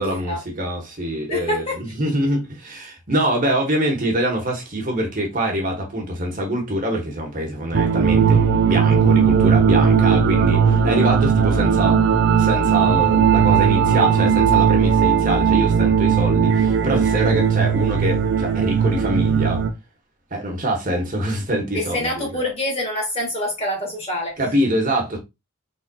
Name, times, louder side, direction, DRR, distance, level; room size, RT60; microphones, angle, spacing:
voice 1, 0.0-8.4 8.7-12.0 12.4-19.6 20.3-22.4 24.4-25.2, right 1 dB, 40° right, 1.2 m, -24 dB
voice 2, 1.3-1.8 21.7-24.4, left 1 dB, 30° left, 1.5 m, -25 dB
sound 1, 7.7-19.7, right 7 dB, 55° right, 0.5 m, -17 dB
Brass instrument, 8.0-15.2, left 4 dB, 65° left, 1.5 m, -30 dB
4.1 x 3.6 x 2.2 m
head